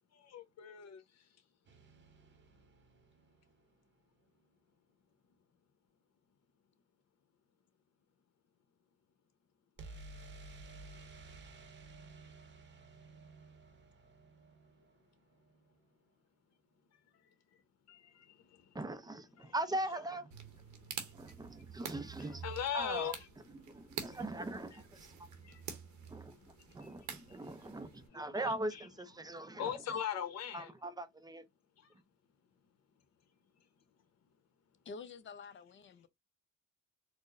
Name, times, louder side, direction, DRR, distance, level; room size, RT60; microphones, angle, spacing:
voice 1, 0.1-1.4 16.9-18.8 19.4-19.5 20.6-23.3 23.5-24.2 25.1-28.9 29.2-30.7 31.8-32.0 33.5-33.7, left 9 dB, 60° left, 0.9 m, -44 dB
sound 1, 1.7-3.7 9.8-15.6, right 3 dB, 35° right, 0.8 m, -54 dB
voice 2, 18.7-20.3 21.1-22.4 22.7-23.1 23.6-25.3 25.7-25.8 26.1-26.4 26.7-29.7 30.5-31.5, right 1 dB, 15° right, 0.5 m, -40 dB
sound 2, 20.3-28.1, right 8 dB, 75° right, 0.8 m, -48 dB
voice 3, 34.8-36.1, left 4 dB, 40° left, 0.6 m, -49 dB
4.4 x 2.0 x 2.5 m
cardioid pair, 90°, 30 cm